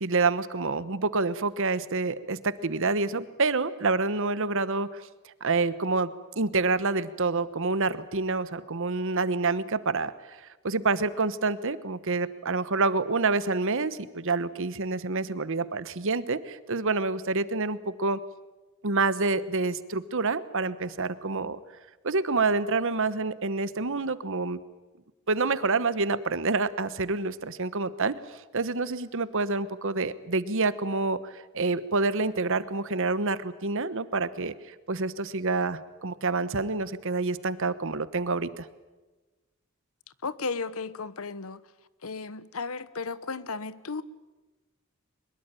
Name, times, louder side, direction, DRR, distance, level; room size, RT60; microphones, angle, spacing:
voice 1, 0.0-5.0 5.4-6.1 6.4-10.4 10.6-18.2 18.8-21.6 22.0-24.6 25.3-28.2 28.5-38.7, right 3 dB, 60° right, 15 dB, 1.2 m, -27 dB
voice 2, 40.2-41.6 42.0-44.0, left 4 dB, 70° left, 17 dB, 1.0 m, -34 dB
23.0 x 21.5 x 9.0 m, 1.2 s
head